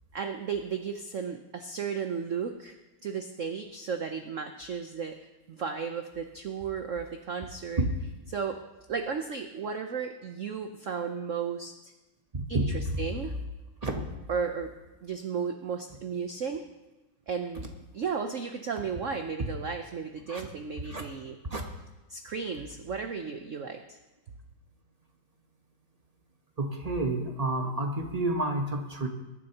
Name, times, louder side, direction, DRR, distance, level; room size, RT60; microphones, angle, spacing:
voice 1, 0.1-2.8 3.0-5.2 5.5-7.8 8.3-8.6 8.9-11.9 12.5-13.3 14.3-14.7 15.0-16.6 17.3-17.7 17.9-21.4 22.1-24.0, right 6 dB, 85° right, 6 dB, 0.6 m, -34 dB
voice 2, 12.3-13.0 13.8-14.1 20.3-20.5 20.9-21.0 21.5-21.6 26.6-29.1, right 2 dB, 30° right, 3 dB, 0.7 m, -30 dB
22.0 x 9.9 x 2.9 m, 1.1 s
omnidirectional pair, 2.3 m